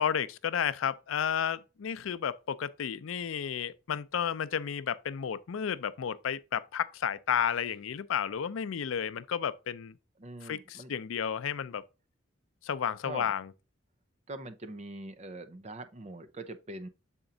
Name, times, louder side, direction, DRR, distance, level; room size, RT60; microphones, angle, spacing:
voice 1, 0.0-9.9 10.4-11.8 12.6-13.5, left 8 dB, 90° left, 0.4 m, -32 dB
voice 2, 10.2-10.9 13.0-13.3 14.3-16.9, right 2 dB, 35° right, 0.6 m, -43 dB
7.0 x 4.3 x 3.8 m
head